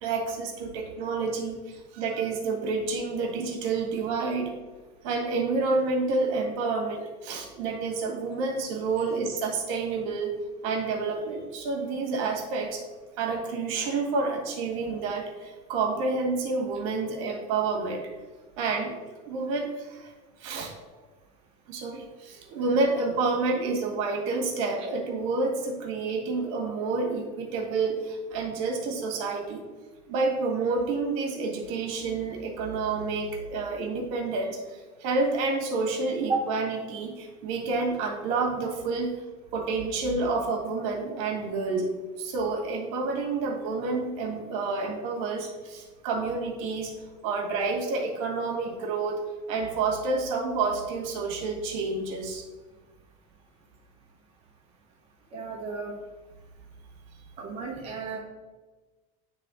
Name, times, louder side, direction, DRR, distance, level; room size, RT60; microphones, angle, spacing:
voice 1, 0.0-4.5 5.0-10.3 10.6-12.8 13.2-18.1 18.6-20.1 20.4-20.8 21.7-29.6 30.1-39.1 39.5-41.9 42.2-46.9 47.2-49.2 49.5-52.4, right 3 dB, 65° right, 1 dB, 1.8 m, -29 dB
voice 2, 55.3-55.9 57.4-58.2, right 4 dB, 35° right, -3 dB, 1.0 m, -32 dB
9.8 x 3.4 x 3.8 m, 1.3 s
cardioid pair, 170°, 17 cm